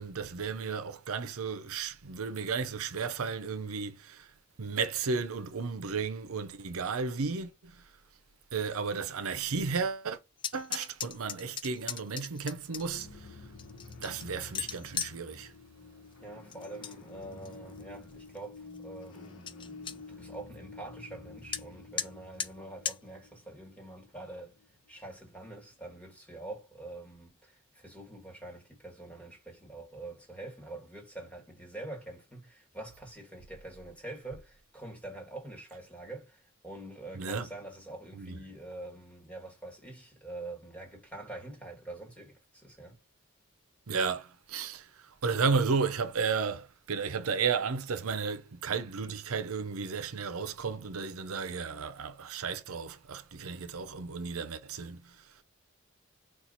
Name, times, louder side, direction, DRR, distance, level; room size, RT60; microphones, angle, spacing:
voice 1, 0.0-4.3 4.6-7.8 8.5-10.2 10.5-13.3 14.0-15.5 37.1-37.5 38.1-38.4 43.9-55.2, right 5 dB, 85° right, 0.7 m, -33 dB
sound 1, 10.4-13.0 13.6-15.2 16.5-16.9 17.3-17.8 18.3-18.4 18.7-18.8 19.1-19.2 19.5-20.0 21.5-21.6 22.0-22.1 22.4-22.5 22.8-23.0, left 7 dB, 25° left, 0.3 m, -37 dB
sound 2, 12.7-25.2, left 3 dB, 70° left, 1.0 m, -50 dB
voice 2, 16.2-24.6 24.9-43.0, right 2 dB, 5° left, 1.6 m, -45 dB
4.4 x 2.4 x 4.0 m
head